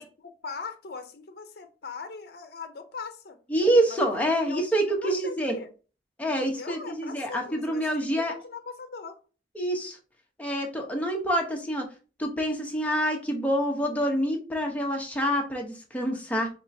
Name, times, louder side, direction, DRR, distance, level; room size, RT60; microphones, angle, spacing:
voice 1, 0.0-3.4 3.9-4.1 4.5-5.7 6.2-9.2, left 4 dB, 60° left, 0.6 m, -40 dB
voice 2, 3.5-5.5 6.2-8.3 9.5-10.0 10.4-11.9 12.2-16.5, right 1 dB, 10° left, 0.9 m, -26 dB
4.2 x 3.5 x 2.7 m
head